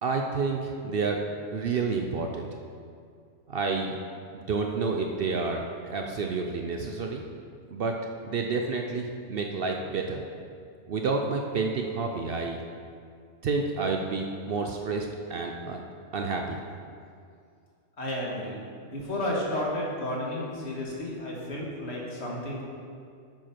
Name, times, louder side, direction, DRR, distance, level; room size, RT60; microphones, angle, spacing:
voice 1, 0.0-1.2 1.5-2.5 3.5-4.0 4.3-7.3 7.7-8.0 8.2-10.2 10.9-12.6 13.4-15.8 16.1-16.6, right 4 dB, 60° right, 2 dB, 0.7 m, -29 dB
voice 2, 18.0-22.6, left 1 dB, 60° left, -3 dB, 1.9 m, -32 dB
8.8 x 5.1 x 5.8 m, 2.3 s
omnidirectional pair, 1.3 m